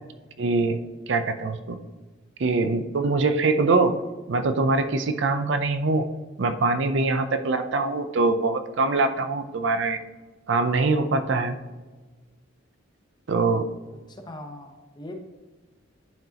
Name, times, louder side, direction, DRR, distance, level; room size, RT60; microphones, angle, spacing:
voice 1, 0.4-0.8 1.1-1.8 2.4-4.0 4.3-6.0 6.4-10.0 10.5-11.6 13.3-13.7, right 3 dB, 60° right, 9 dB, 0.5 m, -23 dB
voice 2, 13.9-15.1, left 1 dB, 20° left, 4 dB, 0.8 m, -41 dB
10.5 x 4.8 x 2.9 m, 1.3 s
head